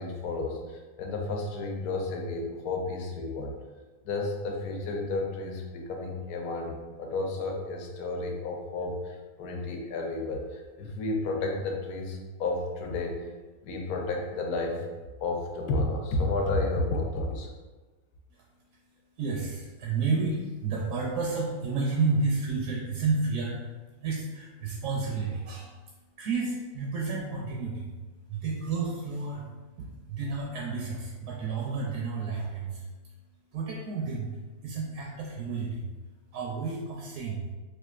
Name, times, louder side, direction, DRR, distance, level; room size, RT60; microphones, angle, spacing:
voice 1, 0.0-3.6 4.0-13.2 13.6-14.8 15.2-17.5, left 2 dB, 80° left, 2 dB, 1.1 m, -32 dB
voice 2, 19.2-33.1 33.5-37.5, right 4 dB, 70° right, -3 dB, 0.9 m, -31 dB
4.4 x 2.4 x 2.4 m, 1.3 s
omnidirectional pair, 1.6 m